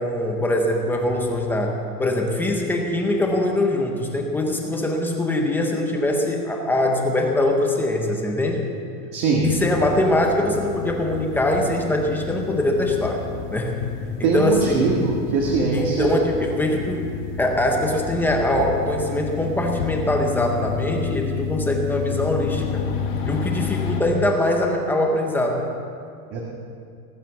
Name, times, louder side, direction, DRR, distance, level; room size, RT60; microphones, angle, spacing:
voice 1, 0.0-8.6 9.4-13.2 13.5-13.8 14.2-15.1 15.7-22.8 23.3-25.6, left 1 dB, 5° left, 1 dB, 0.6 m, -23 dB
voice 2, 9.1-9.5 14.2-16.2 26.3-26.4, right 4 dB, 35° right, -1 dB, 1.8 m, -21 dB
sound 1, 9.4-24.0, left 6 dB, 60° left, 3.2 m, -30 dB
18.5 x 8.8 x 7.1 m, 2.3 s
supercardioid pair, 170°, 45 cm